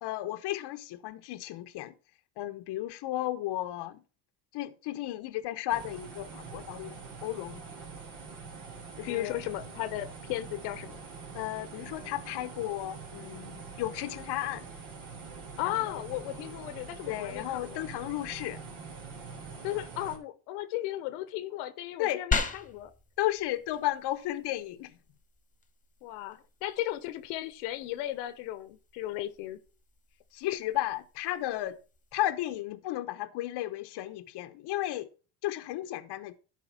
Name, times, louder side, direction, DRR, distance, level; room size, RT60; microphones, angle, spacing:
voice 1, 0.0-1.9 2.4-4.0 4.5-7.6 9.0-9.4 11.3-14.7 15.6-16.0 17.1-18.6 22.0-22.2 23.2-24.9 30.3-31.8 32.1-35.1 35.4-36.4, left 15 dB, 60° left, 0.9 m, -34 dB
sound 1, 5.7-20.2, right 5 dB, 60° right, 3.3 m, -44 dB
voice 2, 9.1-11.0 15.6-17.8 19.6-22.9 26.0-29.6, left 14 dB, 85° left, 1.1 m, -35 dB
sound 2, 22.3-32.3, left 4 dB, 15° left, 1.4 m, -40 dB
12.0 x 4.5 x 5.9 m
supercardioid pair, 85°, 45 cm